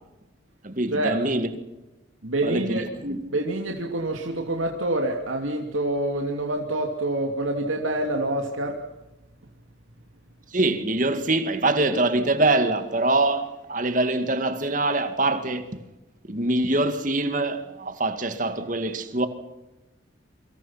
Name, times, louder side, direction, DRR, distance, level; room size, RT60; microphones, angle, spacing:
voice 1, 0.6-1.5 2.4-3.2 10.5-15.8 16.3-19.3, right 2 dB, 40° right, 2.2 m, -24 dB
voice 2, 2.2-2.8 3.3-8.8, right 1 dB, 90° right, 2.8 m, -26 dB
28.5 x 25.0 x 5.9 m
head